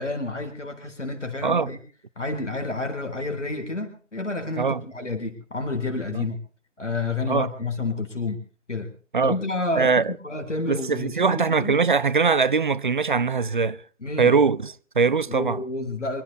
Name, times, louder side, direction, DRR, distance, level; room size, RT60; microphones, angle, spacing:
voice 1, 0.0-1.8 2.2-6.4 6.8-8.4 8.7-8.9 9.2-11.8 14.0-14.3 15.3-16.2, left 3 dB, 70° left, 4.1 m, -30 dB
voice 2, 9.8-10.1 10.7-13.8 14.2-15.6, right 5 dB, 40° right, 0.7 m, -22 dB
25.0 x 13.0 x 4.1 m
figure-of-eight pair, 145°, 38 cm